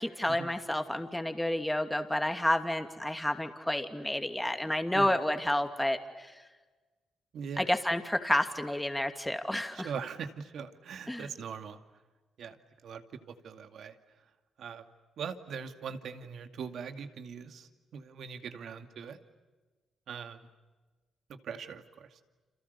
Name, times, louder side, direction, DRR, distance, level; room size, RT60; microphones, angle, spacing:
voice 1, 0.0-6.3 7.6-9.9 11.1-11.3, left 1 dB, 5° left, 6 dB, 2.7 m, -30 dB
voice 2, 7.3-7.7 9.7-11.8 12.4-12.6 12.8-13.0 13.3-14.0 14.6-14.9 15.2-19.2 20.1-20.5 21.3-22.2, right 6 dB, 65° right, 8 dB, 2.4 m, -41 dB
29.5 x 28.0 x 6.9 m, 1.3 s
cardioid pair, 90°, 0 cm